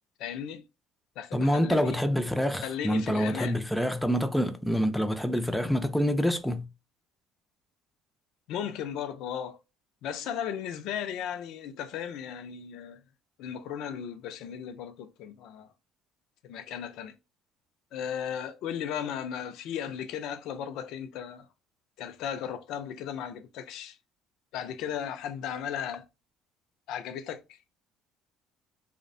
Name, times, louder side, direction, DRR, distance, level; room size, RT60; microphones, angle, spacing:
voice 1, 0.2-0.6 1.2-2.0 2.6-3.6 8.5-9.6 10.0-13.0 13.4-15.7 16.4-17.1 17.9-21.5 22.0-24.0 24.5-26.0 26.9-27.6, left 9 dB, 75° left, 0.4 m, -36 dB
voice 2, 1.3-6.7, equal, 5° left, 0.4 m, -26 dB
2.5 x 2.1 x 2.5 m
supercardioid pair, 95°, 0 cm